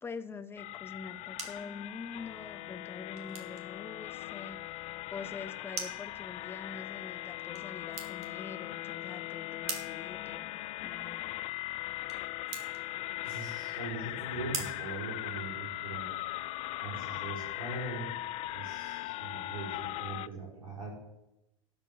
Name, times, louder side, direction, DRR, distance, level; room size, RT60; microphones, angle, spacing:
voice 1, 0.0-4.6 5.1-11.4, left 4 dB, 15° left, 12 dB, 0.8 m, -45 dB
sound 1, 0.6-20.3, left 18 dB, 35° left, 0.4 m, -39 dB
sound 2, 0.9-15.9, right 5 dB, 35° right, 2.6 m, -47 dB
voice 2, 13.2-16.1 16.8-18.1 18.5-20.9, right 3 dB, 80° right, -8 dB, 5.3 m, -41 dB
12.0 x 7.9 x 7.5 m, 0.92 s
hypercardioid pair, 95°, 18 cm